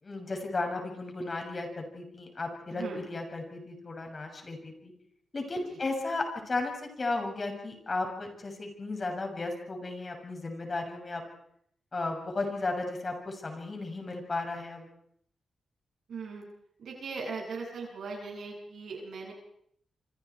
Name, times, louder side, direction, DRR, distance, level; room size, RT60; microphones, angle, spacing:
voice 1, 0.0-4.9 5.3-11.2 11.9-14.9, left 2 dB, 40° left, 3 dB, 7.3 m, -34 dB
voice 2, 16.1-16.4 16.8-19.3, right 4 dB, 75° right, 0 dB, 7.9 m, -39 dB
27.0 x 26.0 x 4.9 m, 0.69 s
cardioid pair, 85°, 0 cm